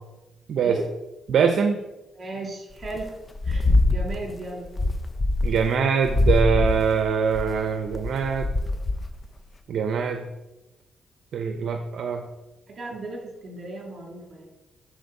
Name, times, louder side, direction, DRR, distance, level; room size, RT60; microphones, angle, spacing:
voice 1, 1.3-1.8 5.4-8.5 9.7-10.3 11.3-12.3, right 6 dB, 70° right, 6 dB, 0.7 m, -23 dB
voice 2, 2.1-3.1 3.4-4.7 12.7-14.5, right 2 dB, 50° right, 0 dB, 3.1 m, -36 dB
sound 1, 2.8-3.1 3.4-4.3 4.6-5.8 6.0-9.2, left 2 dB, 30° left, 0.8 m, -23 dB
11.5 x 4.4 x 5.3 m, 1.0 s
cardioid pair, 80°, 0 cm